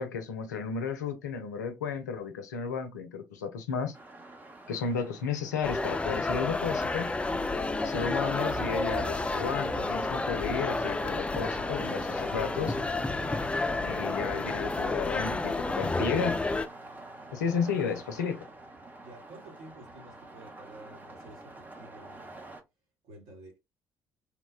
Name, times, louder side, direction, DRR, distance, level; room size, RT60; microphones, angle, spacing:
voice 1, 0.0-4.0 4.7-7.1 7.8-12.8 13.8-16.4 17.3-18.5, left 6 dB, 75° left, 0.4 m, -33 dB
sound 1, 3.9-22.6, right 2 dB, 20° right, 0.7 m, -48 dB
sound 2, 5.6-16.7, left 2 dB, 10° left, 0.3 m, -30 dB
sound 3, 12.0-21.6, right 7 dB, 85° right, 1.5 m, -58 dB
voice 2, 17.4-18.0 19.0-22.6 23.0-23.6, right 1 dB, 60° right, 0.9 m, -50 dB
3.0 x 2.1 x 2.3 m
figure-of-eight pair, 50°, 9 cm